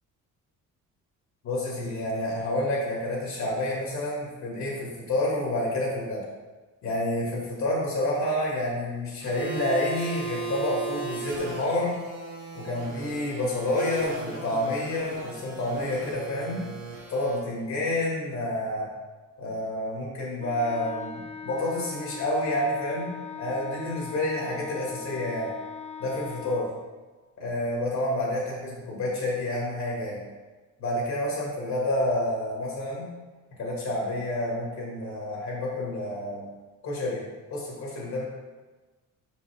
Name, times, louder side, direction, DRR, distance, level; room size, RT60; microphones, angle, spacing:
voice 1, 1.4-6.2 6.8-12.0 12.5-16.6 17.1-18.9 19.4-23.1 23.4-25.5 26.0-26.7 27.4-30.2 30.8-33.1 33.6-36.5 36.8-37.2 37.5-38.2, left 1 dB, 55° left, -4 dB, 1.9 m, -29 dB
sound 1, 9.2-17.4, right 3 dB, 85° right, 1.9 m, -37 dB
Wind instrument woodwind instrument, 20.4-26.8, left 6 dB, 20° left, 0.4 m, -40 dB
5.5 x 5.3 x 3.4 m, 1.3 s
cardioid pair, 130°, 33 cm